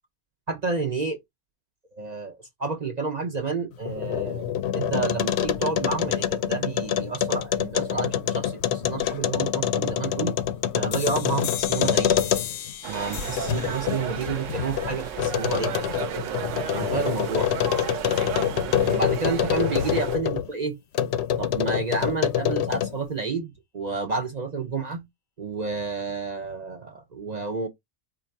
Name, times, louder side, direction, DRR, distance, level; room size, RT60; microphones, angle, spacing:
voice 1, 0.5-1.2 1.9-10.4 10.7-12.1 12.9-15.7 16.4-17.5 18.9-20.8 21.4-25.0 25.4-27.7, right 4 dB, 50° right, 0.5 m, -30 dB
sound 1, 3.7-12.7 13.2-20.5 20.9-23.1, left 9 dB, 65° left, 0.7 m, -26 dB
sound 2, 10.9-16.3, left 10 dB, 90° left, 1.0 m, -38 dB
sound 3, 12.8-20.2, right 9 dB, 70° right, 0.9 m, -34 dB
3.7 x 2.4 x 4.4 m
omnidirectional pair, 1.4 m